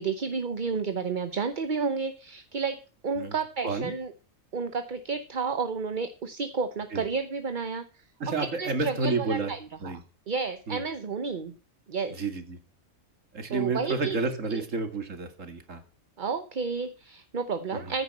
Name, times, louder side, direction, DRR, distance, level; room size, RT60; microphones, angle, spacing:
voice 1, 0.0-4.1 4.5-7.8 8.4-9.6 9.8-11.5 11.9-12.2 13.5-14.2 14.5-14.6 16.2-18.0, right 5 dB, 40° right, 10 dB, 1.0 m, -31 dB
voice 2, 8.2-9.5 9.8-10.0 10.7-10.8 12.1-12.6 13.3-15.8 17.7-17.9, right 3 dB, 65° right, 8 dB, 2.4 m, -30 dB
14.5 x 10.0 x 4.3 m, 0.37 s
omnidirectional pair, 1.4 m